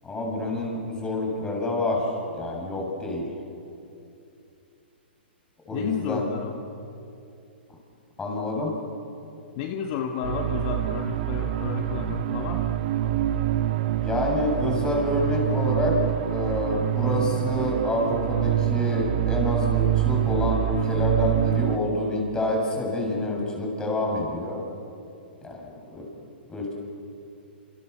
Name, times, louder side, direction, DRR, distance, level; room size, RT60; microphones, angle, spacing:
voice 1, 0.0-3.3 5.7-6.3 8.2-8.7 14.0-16.0 16.3-24.6 25.4-26.1 26.5-26.7, left 1 dB, 15° left, 0 dB, 7.6 m, -27 dB
voice 2, 5.7-6.6 9.6-12.8, left 8 dB, 45° left, 4 dB, 1.8 m, -32 dB
sound 1, 10.2-21.8, right 15 dB, 55° right, 1.5 m, -26 dB
29.0 x 28.5 x 7.0 m, 2.6 s
hypercardioid pair, 130°, 6 cm